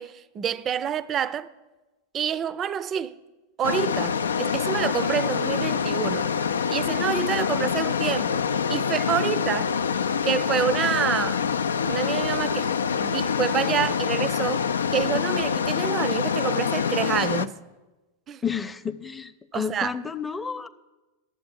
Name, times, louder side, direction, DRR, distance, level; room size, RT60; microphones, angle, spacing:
voice 1, 0.0-1.5 2.1-3.2 3.6-6.3 6.7-8.4 8.7-9.8 10.2-11.5 11.8-14.7 14.9-17.6 18.3-18.4 19.5-20.0, right 9 dB, 30° right, 0.5 m, -27 dB
sound 1, 3.6-17.5, left 6 dB, 80° left, 0.4 m, -25 dB
voice 2, 18.4-20.7, left 6 dB, 10° left, 0.6 m, -31 dB
11.5 x 7.7 x 8.1 m
figure-of-eight pair, 90°, 0 cm